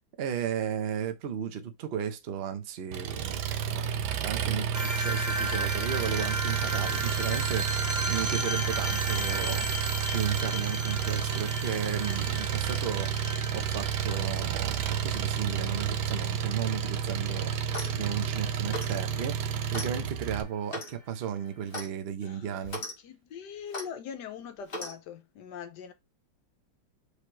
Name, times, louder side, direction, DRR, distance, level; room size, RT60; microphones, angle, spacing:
voice 1, 0.2-9.7 10.1-13.1 13.5-17.5 17.9-19.4 19.7-22.8, right 8 dB, 50° right, 0.7 m, -34 dB
Engine, 2.9-20.4, right 8 dB, 75° right, 1.2 m, -31 dB
sound 1, 4.7-19.7, equal, 25° right, 0.3 m, -36 dB
Clock, 17.6-18.0 18.7-19.0 19.7-19.9 20.7-21.0 21.7-21.9 22.6-22.9 23.7-23.9 24.7-24.9, left 1 dB, 35° left, 1.5 m, -37 dB
voice 2, 22.2-22.6 23.0-25.9, left 7 dB, 75° left, 1.3 m, -42 dB
5.1 x 3.3 x 3.0 m
omnidirectional pair, 1.9 m